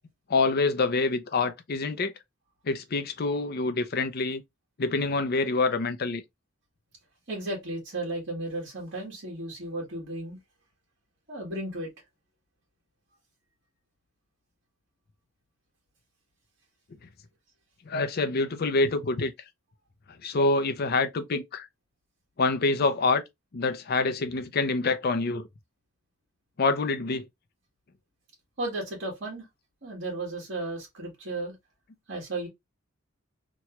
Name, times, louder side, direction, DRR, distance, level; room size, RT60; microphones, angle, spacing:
voice 1, 0.3-2.1 2.7-4.4 4.8-6.2 17.9-19.3 20.2-21.7 22.4-23.2 23.5-25.5 26.6-27.2, left 3 dB, 50° left, 0.5 m, -26 dB
voice 2, 7.3-10.4 11.3-11.9 28.6-29.4 29.8-31.5 32.1-32.5, right 2 dB, 60° right, 1.4 m, -34 dB
3.0 x 2.2 x 2.9 m
head